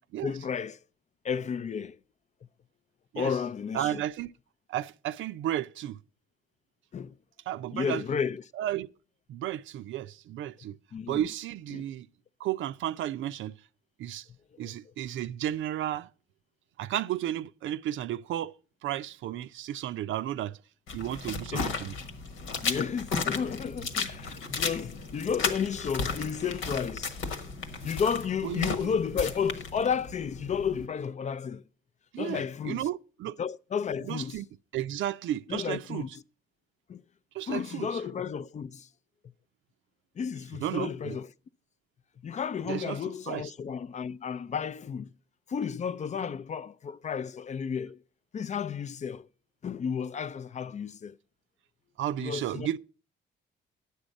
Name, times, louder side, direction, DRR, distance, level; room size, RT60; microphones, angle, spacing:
voice 1, 0.2-0.8 1.2-2.0 3.2-4.0 6.9-7.2 7.7-8.4 10.9-11.2 11.7-11.8 14.6-14.7 21.5-21.8 22.6-27.2 27.8-31.6 32.2-32.9 33.4-34.4 35.5-36.1 36.9-37.0 37.5-38.9 40.2-41.3 42.2-45.1 45.5-48.0 48.3-49.3 49.6-51.2 52.2-52.7, left 7 dB, 35° left, 0.4 m, -32 dB
voice 2, 3.7-4.3 4.7-6.0 7.5-8.0 8.6-8.9 9.3-10.8 11.1-12.1 12.4-13.5 14.0-14.3 14.6-16.1 16.8-18.5 18.8-20.6 20.9-22.0 28.4-28.8 32.1-33.4 34.0-34.5 34.7-36.1 37.3-38.0 40.6-41.2 42.7-43.5 52.0-52.8, right 12 dB, 75° right, 0.5 m, -33 dB
sound 1, 20.9-30.9, left 4 dB, 85° left, 1.4 m, -35 dB
10.0 x 8.0 x 5.2 m
cardioid pair, 90°, 20 cm